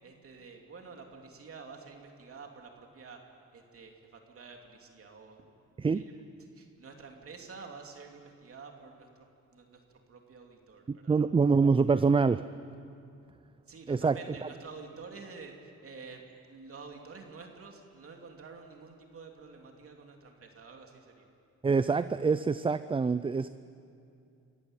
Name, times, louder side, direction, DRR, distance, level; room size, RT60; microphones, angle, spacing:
voice 1, 0.0-3.2 3.5-5.4 5.9-6.0 6.4-9.1 9.5-11.2 13.7-21.3, right 4 dB, 50° right, 2 dB, 2.9 m, -49 dB
voice 2, 10.9-12.4 13.9-14.1 21.6-23.5, right 4 dB, 20° right, 14 dB, 0.5 m, -25 dB
26.0 x 14.5 x 9.1 m, 2.5 s
cardioid pair, 90°, 30 cm